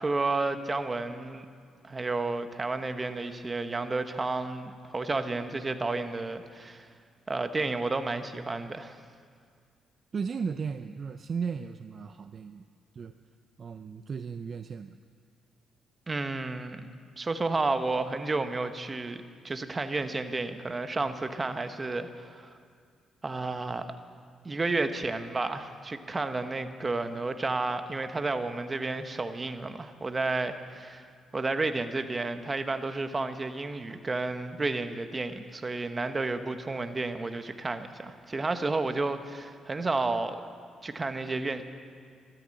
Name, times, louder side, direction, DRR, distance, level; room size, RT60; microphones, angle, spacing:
voice 1, 0.0-1.5 1.8-6.9 7.3-9.0 16.1-16.8 17.2-22.5 23.2-24.0 24.4-31.1 31.3-40.4 40.8-41.6, right 3 dB, 25° right, 9 dB, 1.0 m, -31 dB
voice 2, 10.1-12.6 13.0-13.1 13.6-15.0, right 5 dB, 45° right, 9 dB, 0.5 m, -35 dB
13.5 x 13.5 x 7.6 m, 2.2 s
cardioid pair, 90°, 0 cm